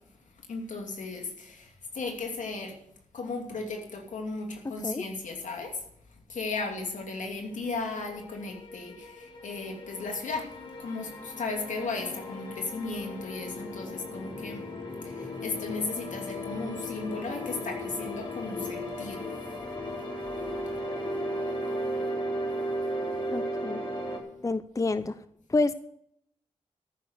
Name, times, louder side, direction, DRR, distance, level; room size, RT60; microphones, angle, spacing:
voice 1, 0.5-2.8 3.1-5.7 6.3-10.4 10.8-14.6 15.0-19.2, left 3 dB, 70° left, 2 dB, 2.7 m, -35 dB
sound 1, 8.0-24.2, equal, 40° left, 4.3 m, -35 dB
voice 2, 23.3-23.8 24.4-25.2 25.5-25.7, left 3 dB, 25° left, 14 dB, 0.5 m, -28 dB
14.0 x 6.4 x 8.1 m, 0.74 s
supercardioid pair, 40°, 13 cm